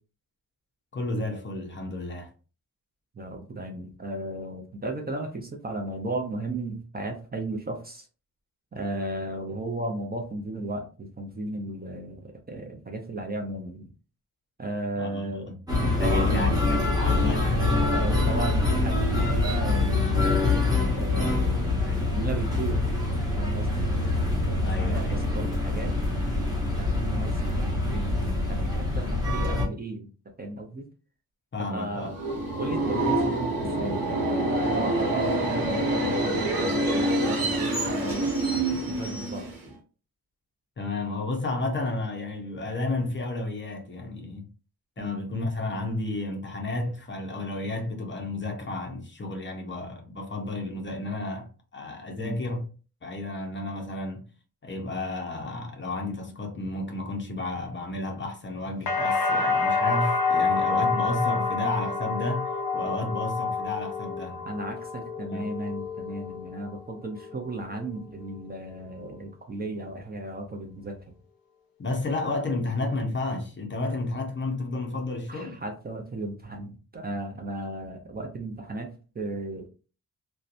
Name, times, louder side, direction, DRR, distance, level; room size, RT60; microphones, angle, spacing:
voice 1, 0.9-2.3 15.0-17.8 21.9-22.0 24.6-25.2 31.5-32.1 40.8-44.5 45.0-52.7 53.0-54.2 54.6-64.5 65.3-65.5 71.8-75.6, left 2 dB, 35° left, 0.5 m, -32 dB
voice 2, 3.1-8.1 8.7-13.9 14.6-15.5 16.0-16.5 17.8-20.3 20.9-22.8 23.4-24.1 24.3-25.9 26.6-30.1 30.4-30.9 31.6-32.1 32.6-38.2 38.9-39.5 45.0-45.1 52.2-52.4 64.5-71.1 75.3-78.9 79.1-79.7, right 2 dB, 25° right, 0.4 m, -35 dB
sound 1, 15.7-29.7, left 2 dB, 10° right, 0.8 m, -25 dB
Subway metro underground, 32.0-39.7, right 1 dB, 70° right, 1.1 m, -26 dB
Big Bell with Verb, 58.9-66.8 67.1-67.8, left 4 dB, 80° left, 0.6 m, -28 dB
2.7 x 2.1 x 2.4 m
wide cardioid pair, 145°, 36 cm